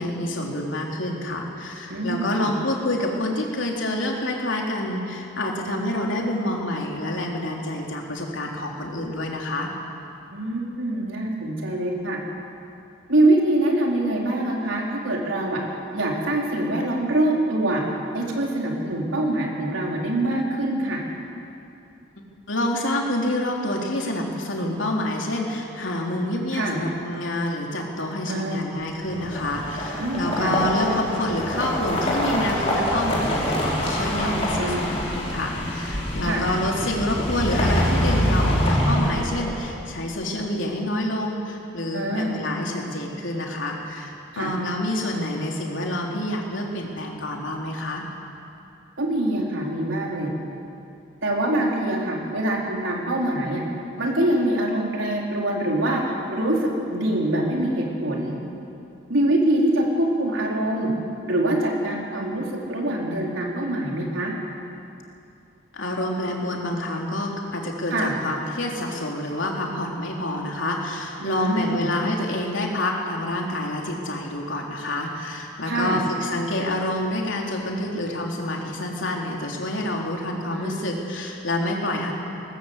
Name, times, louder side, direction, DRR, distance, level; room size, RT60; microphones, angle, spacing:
voice 1, 0.0-9.7 22.2-48.0 65.7-82.1, left 1 dB, 75° left, 0 dB, 3.5 m, -27 dB
voice 2, 1.9-2.5 10.3-12.2 13.1-15.6 15.9-17.8 18.1-21.0 26.5-26.8 28.3-28.7 30.0-30.5 34.6-34.8 36.2-36.5 41.9-42.4 44.3-44.5 49.0-50.3 51.2-53.6 54.0-56.0 56.3-58.4 59.1-60.9 61.2-64.3 67.9-68.1 71.2-71.9 75.7-76.0 80.5-80.8, right 1 dB, 80° right, -2 dB, 4.4 m, -24 dB
sound 1, 29.0-39.8, equal, 30° left, 4.9 m, -25 dB
21.0 x 19.5 x 8.2 m, 2.6 s
head